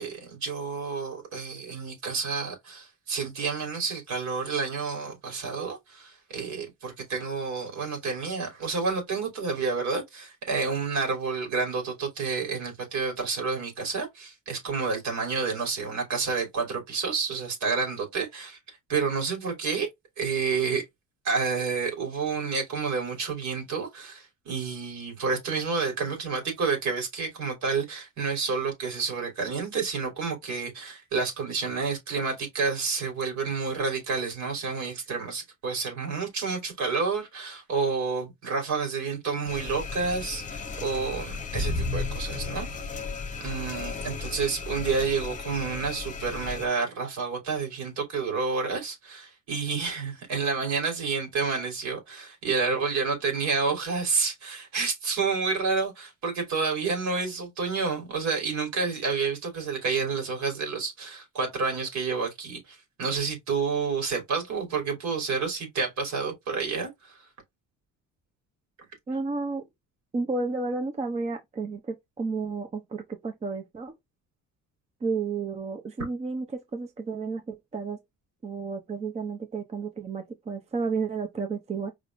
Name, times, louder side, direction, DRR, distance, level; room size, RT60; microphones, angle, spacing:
voice 1, 0.0-19.9 20.2-20.8 21.2-42.7 43.4-67.3, right 4 dB, 65° right, 3.3 m, -29 dB
sound 1, 39.5-46.7, left 4 dB, 25° left, 1.0 m, -34 dB
voice 2, 69.1-69.6 70.1-73.9 75.0-78.0 78.4-81.9, right 4 dB, 20° right, 0.6 m, -32 dB
5.0 x 3.4 x 2.5 m
cardioid pair, 160°, 31 cm